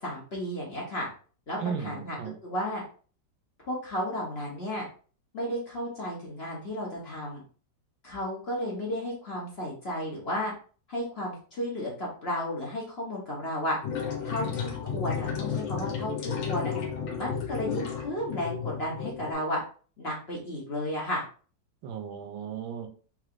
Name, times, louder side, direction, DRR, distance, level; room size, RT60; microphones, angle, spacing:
voice 1, 0.0-1.1 1.5-2.2 2.4-2.8 3.6-4.8 5.3-7.4 8.0-10.5 10.9-13.8 14.2-16.7 17.2-19.6 20.0-21.2, left 1 dB, 40° left, -3 dB, 1.0 m, -33 dB
voice 2, 1.6-2.3 21.8-22.9, right 8 dB, 85° right, 5 dB, 1.5 m, -35 dB
sound 1, 13.8-19.3, left 7 dB, 85° left, 1.5 m, -33 dB
3.8 x 3.2 x 2.4 m, 0.40 s
omnidirectional pair, 2.0 m